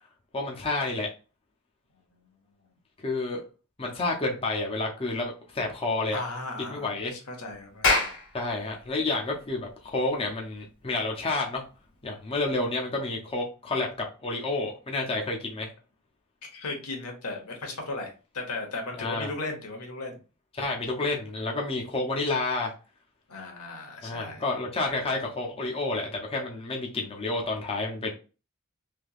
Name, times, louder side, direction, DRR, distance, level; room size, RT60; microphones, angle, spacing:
voice 1, 0.3-1.1 3.0-3.4 3.8-6.2 6.6-7.1 8.3-11.6 12.0-13.9 14.2-15.7 19.0-19.3 20.6-22.7 24.0-28.1, left 2 dB, 25° left, -1 dB, 0.6 m, -29 dB
voice 2, 6.1-8.1 16.4-20.2 23.3-24.4, left 2 dB, 90° left, 2 dB, 1.1 m, -36 dB
Clapping, 7.6-12.5, left 3 dB, 70° left, 1.6 m, -31 dB
3.4 x 2.8 x 2.4 m, 0.33 s
head